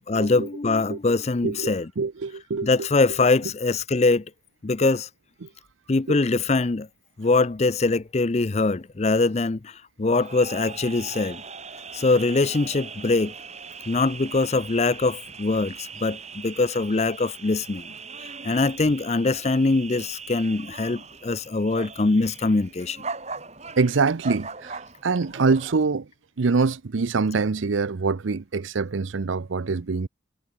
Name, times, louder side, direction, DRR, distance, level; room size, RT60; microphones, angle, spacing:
voice 1, 0.1-1.9 2.6-4.2 4.6-5.1 5.9-6.9 7.2-11.4 11.9-13.3 13.9-17.9 18.2-23.0, left 3 dB, 35° left, 0.5 m, -23 dB
voice 2, 1.4-2.9 4.8-4.9 5.4-5.5 6.1-6.2 23.8-26.1 26.4-30.1, right 4 dB, 75° right, 0.6 m, -25 dB
sound 1, 10.1-25.8, right 4 dB, 35° right, 6.5 m, -40 dB
head